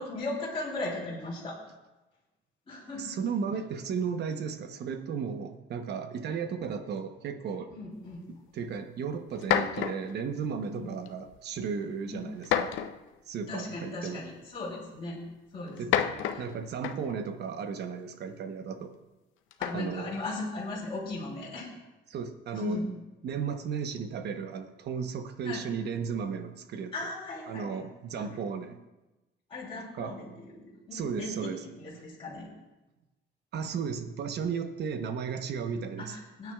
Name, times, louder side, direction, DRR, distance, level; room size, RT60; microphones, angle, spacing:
voice 1, 0.0-1.6 2.7-3.2 7.7-8.2 10.7-10.9 12.1-12.2 13.5-15.2 15.5-16.4 19.6-21.7 22.5-22.9 25.4-25.6 26.9-27.9 28.1-28.7 29.5-32.5 36.0-36.5, left 2 dB, 25° left, -7 dB, 3.3 m, -38 dB
voice 2, 3.0-7.7 8.5-12.8 13.3-14.3 15.8-16.0 16.4-18.9 19.7-20.2 22.1-22.8 23.2-26.9 27.5-28.8 30.0-30.2 30.9-31.6 33.5-36.2, right 6 dB, 60° right, 8 dB, 1.0 m, -34 dB
sound 1, 8.8-8.9 9.4-10.2 11.1-11.4 12.4-13.1 14.3-14.4 15.7-17.2 19.5-20.0, left 10 dB, 80° left, 0.7 m, -30 dB
20.5 x 9.4 x 2.4 m, 1.0 s
cardioid pair, 135°, 20 cm